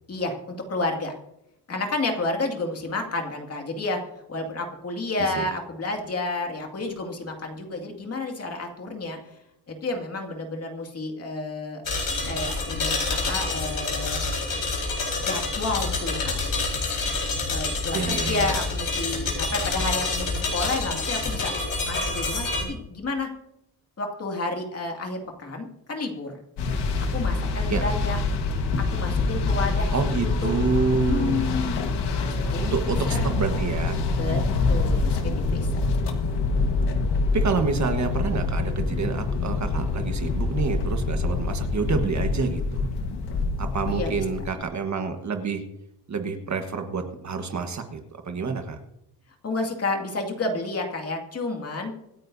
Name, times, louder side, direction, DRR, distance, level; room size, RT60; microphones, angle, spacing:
voice 1, 0.1-1.1 1.7-9.4 9.7-11.8 12.3-14.2 15.2-16.4 17.5-21.5 21.8-23.3 24.0-26.4 27.0-28.2 28.8-30.0 30.4-30.5 31.1-31.8 32.2-33.3 34.1-35.8 43.9-44.2 49.4-51.9, left 2 dB, 35° left, 2 dB, 2.3 m, -30 dB
sound 1, 11.8-22.6, left 3 dB, 50° left, 4.6 m, -27 dB
voice 2, 17.9-18.5 27.7-27.8 29.9-31.4 32.6-34.0 37.3-42.8 43.6-45.6 46.1-48.0 48.2-48.8, right 5 dB, 40° right, 5 dB, 1.4 m, -28 dB
sound 2, 26.6-44.5, left 3 dB, 70° left, 1.5 m, -25 dB
25.5 x 9.4 x 2.7 m, 0.82 s
cardioid pair, 150°, 42 cm